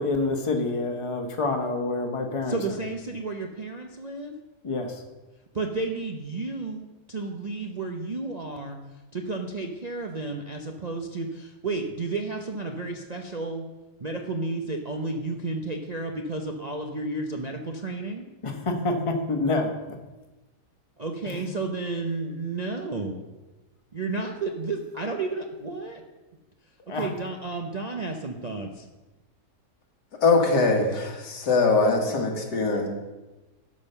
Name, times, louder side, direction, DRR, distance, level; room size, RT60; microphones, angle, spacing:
voice 1, 0.0-2.6 4.6-5.0 18.4-20.0 21.2-21.4 26.9-27.1, left 3 dB, 20° left, 4 dB, 1.1 m, -27 dB
voice 2, 2.5-4.3 5.5-8.8 9.1-13.6 14.0-18.2 21.0-23.2 23.9-26.0 26.9-28.9, right 3 dB, 40° right, 2 dB, 0.6 m, -32 dB
voice 3, 30.2-32.9, left 3 dB, 80° left, 2 dB, 2.2 m, -22 dB
12.0 x 5.4 x 6.7 m, 1.1 s
omnidirectional pair, 1.8 m